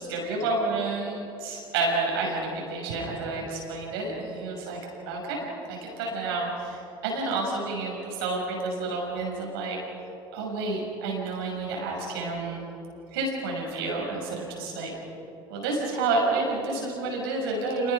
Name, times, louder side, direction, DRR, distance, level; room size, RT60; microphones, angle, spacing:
voice 1, 0.0-4.8 5.1-9.8 10.3-12.6 13.1-14.9 15.5-17.9, right 3 dB, 80° right, -1 dB, 6.2 m, -29 dB
27.5 x 20.5 x 5.8 m, 2.9 s
hypercardioid pair, 65°, 12 cm